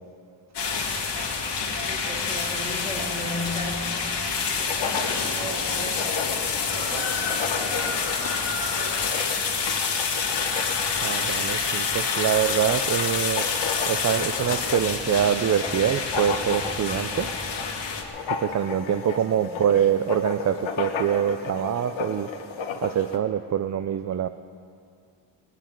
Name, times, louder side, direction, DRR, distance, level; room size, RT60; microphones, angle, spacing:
sound 1, 0.5-18.0, left 5 dB, 60° left, 2.4 m, -27 dB
voice 1, 1.6-4.0 4.5-6.2 6.7-7.8 8.8-9.5 19.3-19.6, equal, 10° right, -4 dB, 3.6 m, -37 dB
Writing, 4.4-23.2, left 5 dB, 90° left, 1.6 m, -35 dB
voice 2, 11.0-13.5 13.9-17.3 18.4-22.3 22.8-24.3, right 9 dB, 40° right, 11 dB, 0.4 m, -25 dB
21.5 x 7.4 x 9.2 m, 2.3 s
wide cardioid pair, 130°, 45 cm